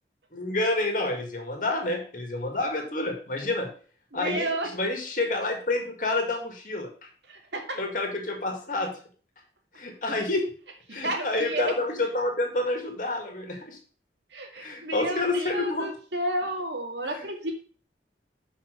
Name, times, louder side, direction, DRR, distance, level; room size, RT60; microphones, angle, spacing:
voice 1, 0.3-3.7 4.1-6.9 7.8-8.9 9.8-10.5 10.9-13.8 14.6-15.9 17.0-17.2, left 2 dB, 50° left, 2 dB, 2.2 m, -28 dB
voice 2, 4.1-4.7 7.3-7.8 10.9-11.7 14.3-17.5, right 1 dB, 80° right, 3 dB, 2.1 m, -32 dB
7.2 x 5.3 x 6.5 m, 0.42 s
head